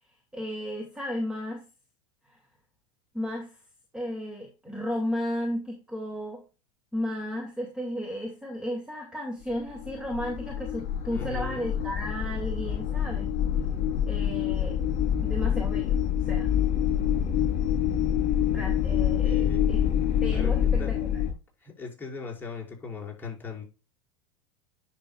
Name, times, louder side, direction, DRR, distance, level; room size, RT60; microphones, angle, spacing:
voice 1, 0.3-1.6 2.3-2.4 3.1-3.6 3.9-6.4 6.9-13.3 14.1-14.8 15.2-16.5 18.5-19.8 20.2-21.2, equal, 5° right, 2.4 m, -34 dB
sound 1, 9.4-21.3, left 9 dB, 45° left, 3.5 m, -26 dB
voice 2, 11.1-11.7 19.2-20.0 20.3-20.9 21.6-23.6, left 5 dB, 10° left, 5.1 m, -39 dB
10.5 x 6.3 x 2.3 m
hypercardioid pair, 95°, 16 cm